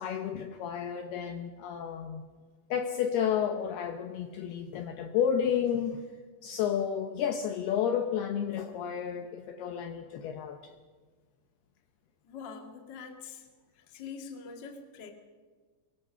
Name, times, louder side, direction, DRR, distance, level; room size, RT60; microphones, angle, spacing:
voice 1, 0.0-2.2 2.7-6.0 6.4-10.7, left 8 dB, 75° left, 6 dB, 2.5 m, -31 dB
voice 2, 12.2-13.5 13.9-15.1, left 5 dB, 40° left, 4 dB, 1.7 m, -44 dB
23.0 x 23.0 x 5.6 m, 1.5 s
omnidirectional pair, 5.5 m